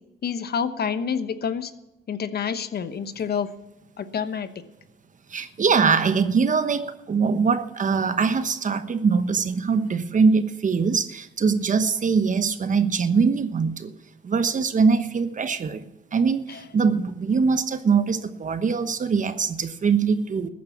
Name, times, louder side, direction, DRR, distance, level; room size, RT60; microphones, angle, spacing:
voice 1, 0.2-1.7 2.1-3.5 4.0-4.5 16.5-16.6, left 7 dB, 55° left, 11 dB, 1.1 m, -28 dB
voice 2, 5.3-13.9 14.2-15.8 16.1-20.5, right 5 dB, 40° right, 11 dB, 1.1 m, -22 dB
14.5 x 9.5 x 7.1 m, 0.97 s
cardioid pair, 90°, 20 cm